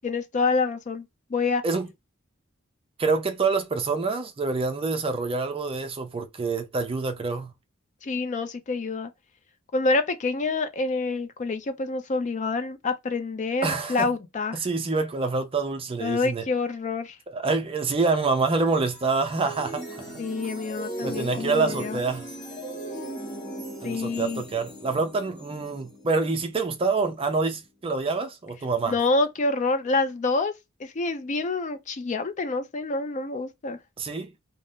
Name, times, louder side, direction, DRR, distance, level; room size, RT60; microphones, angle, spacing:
voice 1, 0.0-1.1 1.3-1.6 8.0-9.1 9.7-14.6 16.0-17.2 20.2-22.0 23.8-24.4 28.8-30.5 30.8-33.8, left 3 dB, 35° left, 0.4 m, -27 dB
voice 2, 3.0-7.5 13.6-14.1 14.5-16.4 17.3-20.2 21.0-22.3 23.8-28.9 34.0-34.3, right 4 dB, 25° right, 0.4 m, -26 dB
sound 1, 18.3-27.5, right 1 dB, 20° left, 0.9 m, -39 dB
2.6 x 2.0 x 3.4 m
head